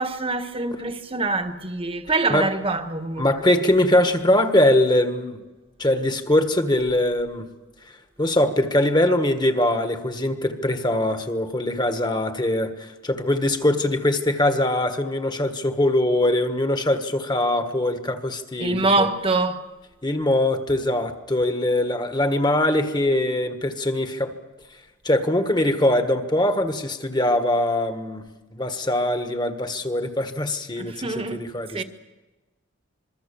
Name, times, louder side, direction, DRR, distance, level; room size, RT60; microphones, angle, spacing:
voice 1, 0.0-3.3 18.6-19.6 30.8-31.4 31.7-31.8, right 3 dB, 25° right, 1.3 m, -24 dB
voice 2, 3.2-5.4 5.8-7.5 8.2-19.1 20.0-24.3 25.0-28.2 28.5-31.8, left 1 dB, 20° left, 1.6 m, -22 dB
26.0 x 22.5 x 7.1 m
head